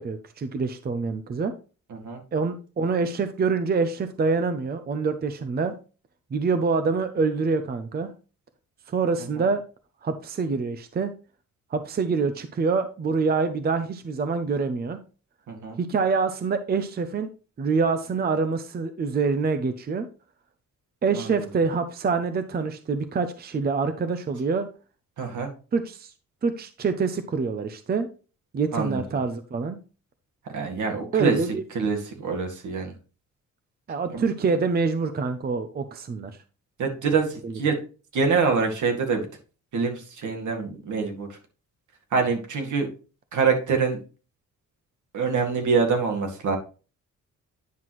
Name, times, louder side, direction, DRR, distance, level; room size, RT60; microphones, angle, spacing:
voice 1, 0.0-1.5 2.3-5.7 6.3-8.1 8.9-9.6 10.0-11.1 11.7-15.0 15.8-17.3 17.6-20.1 21.0-24.7 25.7-26.1 26.4-28.1 28.5-29.8 31.1-31.6 33.9-36.3 37.4-37.5, right 4 dB, 30° right, 9 dB, 0.6 m, -26 dB
voice 2, 15.5-15.8 21.1-21.4 25.2-25.5 28.7-29.0 30.5-31.4 31.7-32.9 34.1-34.3 36.8-37.8 38.1-39.2 39.7-41.4 42.1-42.9 43.3-44.0 45.1-46.6, right 5 dB, 75° right, 3 dB, 2.1 m, -25 dB
9.4 x 5.8 x 3.1 m, 0.35 s
wide cardioid pair, 145°, 30 cm